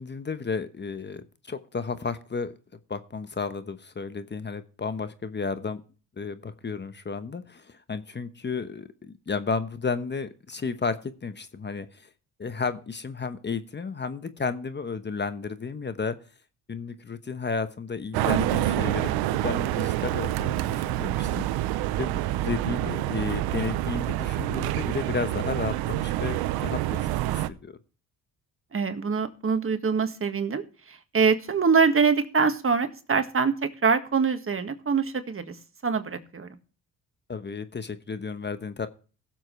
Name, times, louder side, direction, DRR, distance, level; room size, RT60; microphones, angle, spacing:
voice 1, 0.0-2.5 2.9-5.8 6.2-12.1 12.4-16.2 16.7-21.4 22.0-27.1 27.5-27.8 37.3-38.9, left 5 dB, 30° left, 11 dB, 1.1 m, -33 dB
sound 1, 18.1-27.5, right 14 dB, 85° right, 0.7 m, -27 dB
voice 2, 28.7-35.6 35.8-36.5, right 5 dB, 35° right, 8 dB, 1.7 m, -24 dB
16.5 x 7.5 x 3.2 m, 0.37 s
supercardioid pair, 65°, 37 cm